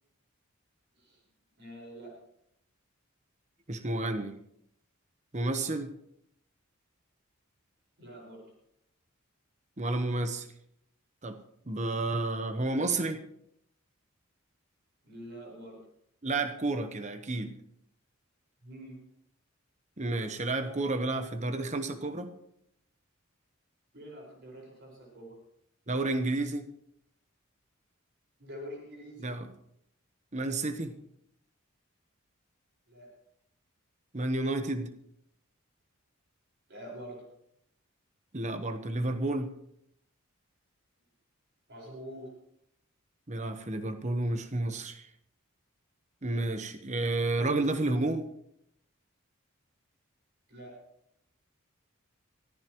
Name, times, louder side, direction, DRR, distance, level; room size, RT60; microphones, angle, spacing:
voice 1, 1.6-2.2 8.0-8.5 15.0-15.8 18.6-19.0 23.9-25.4 28.4-29.3 32.9-33.1 36.7-37.2 41.7-42.3 50.5-50.8, equal, 55° right, -1 dB, 5.3 m, -45 dB
voice 2, 3.7-4.3 5.3-5.9 9.8-10.5 11.2-11.4 11.6-13.2 16.2-17.5 20.0-22.3 25.9-26.6 29.2-29.5 30.3-30.9 34.1-34.9 38.3-39.5 43.3-45.1 46.2-48.3, right 2 dB, 35° right, 8 dB, 1.1 m, -31 dB
24.0 x 14.5 x 3.1 m, 0.75 s
head